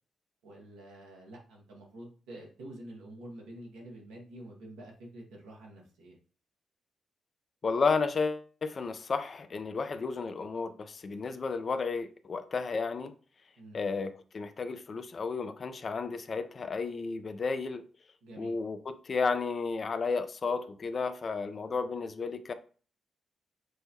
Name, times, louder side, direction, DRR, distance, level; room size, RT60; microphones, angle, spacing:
voice 1, 0.4-6.1 13.6-13.9 18.2-18.5, right 1 dB, 85° right, 1.1 m, -48 dB
voice 2, 7.6-13.1 13.7-17.8 18.4-22.5, left 4 dB, 50° left, 0.5 m, -32 dB
6.2 x 2.2 x 2.8 m
hypercardioid pair, 45°, 0 cm